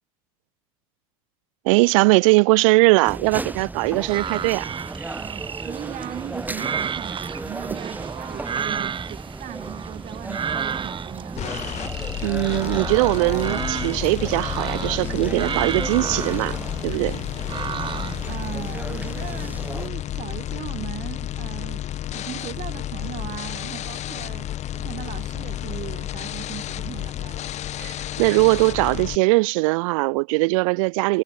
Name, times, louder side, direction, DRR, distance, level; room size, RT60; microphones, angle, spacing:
voice 1, 1.6-4.7 12.2-17.2 27.8-31.2, right 26 dB, 70° right, 1.4 m, -20 dB
sound 1, 3.0-19.9, right 2 dB, 10° right, 6.8 m, -35 dB
sound 2, 4.0-18.3, right 7 dB, 30° right, 2.3 m, -32 dB
voice 2, 5.6-11.5 18.3-21.8 22.1-27.7, right 13 dB, 45° right, 5.7 m, -38 dB
sound 3, 11.4-29.2, left 12 dB, 40° left, 1.8 m, -31 dB
supercardioid pair, 110°, 17 cm